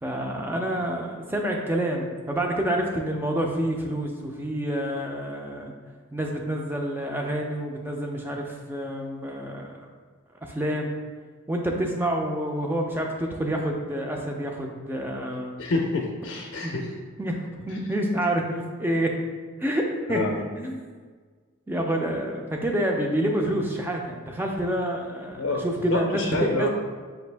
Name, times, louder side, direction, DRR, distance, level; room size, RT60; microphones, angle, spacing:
voice 1, 0.0-5.7 6.1-9.8 10.4-10.9 11.5-15.6 16.6-16.7 17.2-19.1 19.6-20.8 21.7-26.7, right 1 dB, 10° right, 1 dB, 0.3 m, -28 dB
voice 2, 15.6-16.9 20.1-20.3 25.4-26.7, left 2 dB, 65° left, -1 dB, 0.5 m, -28 dB
5.0 x 2.6 x 3.3 m, 1.5 s
head